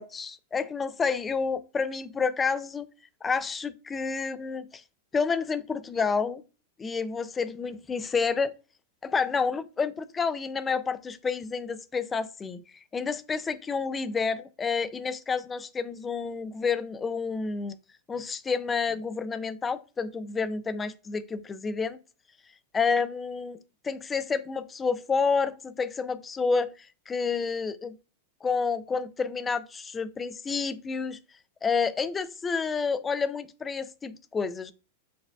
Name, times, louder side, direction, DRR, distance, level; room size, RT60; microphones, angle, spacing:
voice 1, 0.0-2.9 3.2-4.8 5.1-6.4 6.8-8.6 9.0-12.6 12.9-17.8 18.1-22.0 22.7-23.6 23.8-28.0 28.4-31.2 31.6-34.7, left 5 dB, 20° left, 0.3 m, -29 dB
6.5 x 2.3 x 2.2 m
hypercardioid pair, 110°, 0 cm